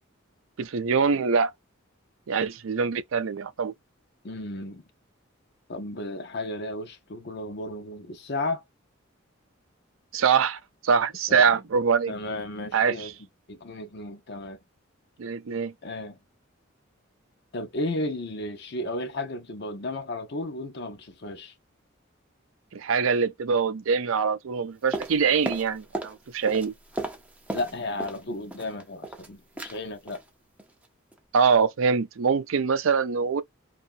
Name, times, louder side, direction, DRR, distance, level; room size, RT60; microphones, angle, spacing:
voice 1, 0.6-1.5 2.3-3.7 10.1-12.1 12.7-13.1 15.2-15.7 22.7-26.7 31.3-33.4, right 6 dB, 75° right, 0.5 m, -24 dB
voice 2, 4.2-4.8 5.7-8.6 11.3-11.4 12.1-13.1 13.5-14.6 15.8-16.2 17.5-21.5 27.5-30.2, left 2 dB, 55° left, 0.7 m, -34 dB
sound 1, 24.9-26.2 26.4-28.2 28.5-29.3 29.6-29.8 30.1-30.3 30.6-30.9 31.1-31.2, right 1 dB, 5° right, 0.5 m, -35 dB
2.7 x 2.4 x 2.5 m
head